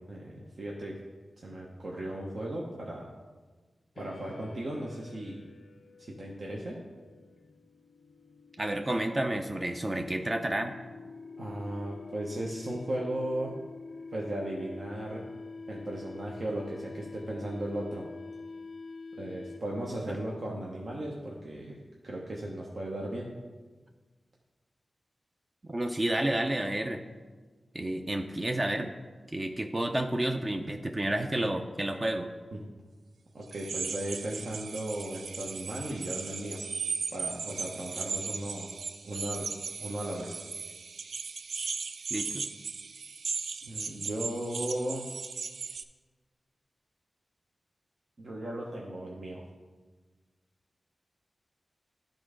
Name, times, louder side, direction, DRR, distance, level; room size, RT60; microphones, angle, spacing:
voice 1, 0.1-1.0 1.4-3.1 3.9-5.4 6.0-6.8 11.4-13.5 14.1-15.2 15.7-18.0 19.2-21.8 22.0-23.3 32.5-32.6 33.3-36.6 37.1-38.7 39.0-39.5 39.8-40.4 43.7-45.1 48.2-49.4, right 1 dB, 65° right, -3 dB, 1.0 m, -36 dB
sound 1, 4.0-19.9, left 4 dB, 65° left, 0.4 m, -46 dB
voice 2, 8.6-10.8 20.1-20.2 25.7-27.0 27.7-28.9 29.3-32.3 42.1-42.4, right 1 dB, 35° right, 4 dB, 0.6 m, -30 dB
sound 2, 33.5-45.8, right 5 dB, 80° right, 0.3 m, -37 dB
11.0 x 3.8 x 5.0 m, 1.4 s
cardioid pair, 40°, 0 cm